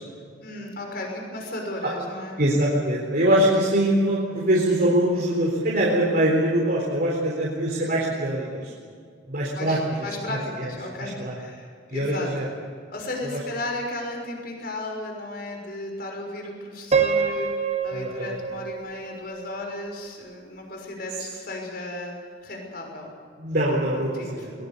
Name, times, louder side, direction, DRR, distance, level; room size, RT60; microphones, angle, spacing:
voice 1, 0.4-2.4 9.5-12.3 12.9-17.5 17.8-22.1 22.4-23.1 24.1-24.5, left 2 dB, 55° left, 2 dB, 6.1 m, -34 dB
voice 2, 2.4-8.7 9.3-9.8 10.3-10.7 11.0-11.3 11.9-12.5 13.2-13.4 17.9-18.4 23.4-24.1 24.4-24.5, right 1 dB, 55° right, -4 dB, 4.1 m, -23 dB
Piano, 16.9-19.9, right 6 dB, 35° right, 1.6 m, -26 dB
22.5 x 21.0 x 6.9 m, 2.2 s
head